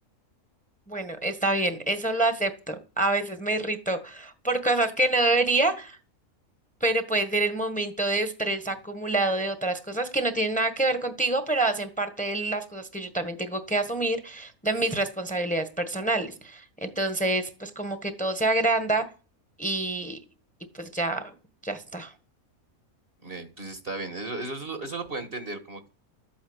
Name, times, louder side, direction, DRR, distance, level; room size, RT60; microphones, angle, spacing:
voice 1, 0.9-6.0 6.8-19.0 19.6-20.2 20.8-21.3 21.6-22.1, right 2 dB, 5° left, 8 dB, 1.4 m, -27 dB
voice 2, 23.2-25.9, right 3 dB, 40° right, 8 dB, 1.6 m, -35 dB
13.0 x 8.6 x 8.0 m, 0.36 s
omnidirectional pair, 1.5 m